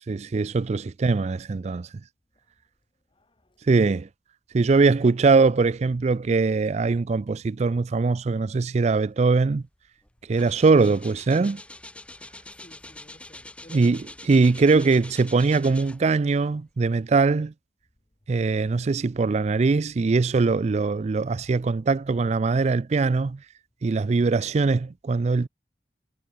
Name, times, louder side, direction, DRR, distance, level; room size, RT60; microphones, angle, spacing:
voice 1, 0.1-1.9 3.7-4.1 4.5-9.6 10.3-11.6 13.7-14.0 14.3-17.5 18.3-23.4 23.8-25.5, right 4 dB, 40° right, 0.4 m, -21 dB
voice 2, 3.1-3.7 12.5-14.2, left 1 dB, 30° left, 2.1 m, -54 dB
sound 1, 9.5-9.7 10.0-16.3 16.9-17.0, left 2 dB, 5° left, 1.2 m, -45 dB
head